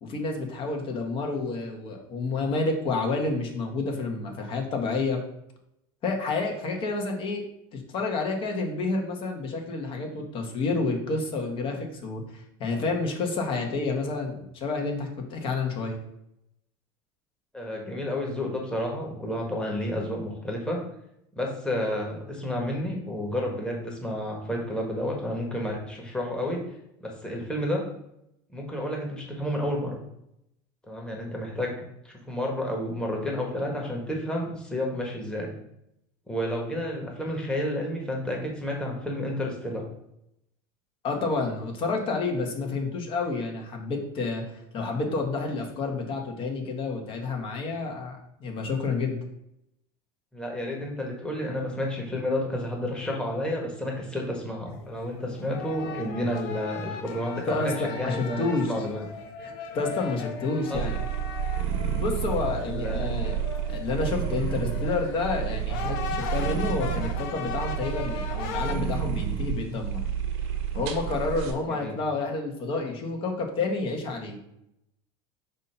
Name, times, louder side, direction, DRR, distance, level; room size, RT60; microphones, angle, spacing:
voice 1, 0.0-5.2 6.0-7.4 7.7-16.0 41.0-49.2 57.5-58.7 59.4-60.9 62.0-70.0 70.7-74.4, left 3 dB, 45° left, 2 dB, 1.4 m, -29 dB
voice 2, 17.5-20.8 21.3-26.6 27.0-27.8 28.5-30.0 30.9-31.8 32.0-35.5 36.3-39.8 50.3-59.0 60.7-61.0 62.6-63.1 71.7-72.0, left 1 dB, 5° left, -1 dB, 1.4 m, -31 dB
sound 1, 54.7-68.7, left 7 dB, 75° left, 0.9 m, -38 dB
sound 2, 60.7-71.5, right 9 dB, 70° right, 1.1 m, -30 dB
6.0 x 2.8 x 5.6 m, 0.79 s
supercardioid pair, 130°, 13 cm